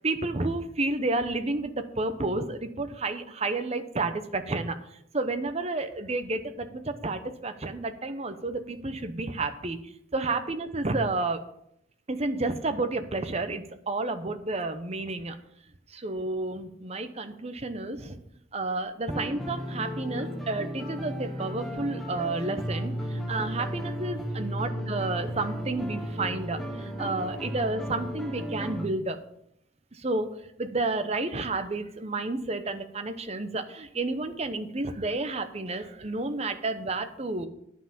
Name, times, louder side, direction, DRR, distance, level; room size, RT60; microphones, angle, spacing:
voice 1, 0.0-4.8 5.1-11.4 12.1-15.4 15.9-18.2 18.5-29.2 29.9-37.5, right 2 dB, 30° right, 8 dB, 0.8 m, -31 dB
sound 1, 19.1-28.9, equal, ahead, 1.1 m, -34 dB
10.0 x 5.7 x 6.9 m, 0.74 s
head